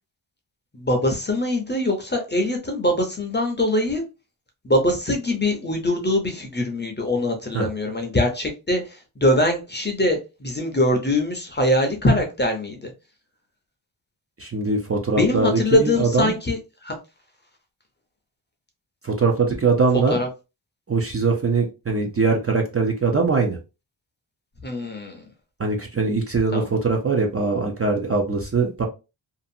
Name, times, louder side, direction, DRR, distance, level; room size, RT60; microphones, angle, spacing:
voice 1, 0.7-4.0 4.6-12.9 15.1-16.9 20.1-20.3 24.6-25.3 26.5-26.7, left 1 dB, 20° left, 3 dB, 0.6 m, -23 dB
voice 2, 14.4-16.3 19.0-20.2 20.9-23.6 25.6-28.8, right 4 dB, 30° right, 1 dB, 0.5 m, -22 dB
2.7 x 2.4 x 2.6 m, 0.28 s
wide cardioid pair, 135°, 48 cm